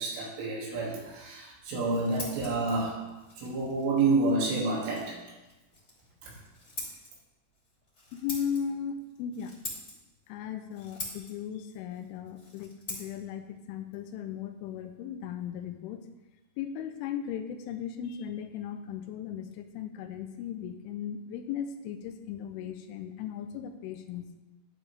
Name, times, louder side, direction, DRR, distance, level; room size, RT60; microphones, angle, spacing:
voice 1, 0.0-3.0 3.4-5.2 6.2-6.4, right 3 dB, 80° right, -3 dB, 5.0 m, -29 dB
Scissors, 1.6-15.2, left 2 dB, 20° left, 2.4 m, -46 dB
voice 2, 8.1-9.6 10.3-16.0 16.6-24.3, left 8 dB, 80° left, 7 dB, 3.2 m, -37 dB
11.5 x 11.0 x 3.4 m, 1.1 s
omnidirectional pair, 5.7 m